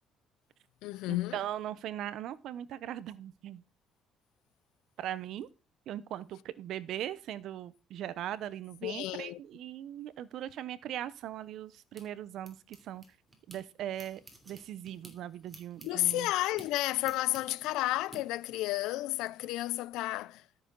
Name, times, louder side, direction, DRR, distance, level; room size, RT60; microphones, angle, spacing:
voice 1, 0.8-1.4 8.8-9.4 15.8-20.4, left 17 dB, 85° left, 0.4 m, -32 dB
voice 2, 1.3-3.6 5.0-5.5 5.9-13.0 13.5-16.3, right 11 dB, 65° right, 0.9 m, -39 dB
sound 1, 11.3-13.6 13.9-18.2, right 2 dB, 15° right, 2.9 m, -54 dB
13.0 x 7.0 x 3.9 m
cardioid pair, 120°, 0 cm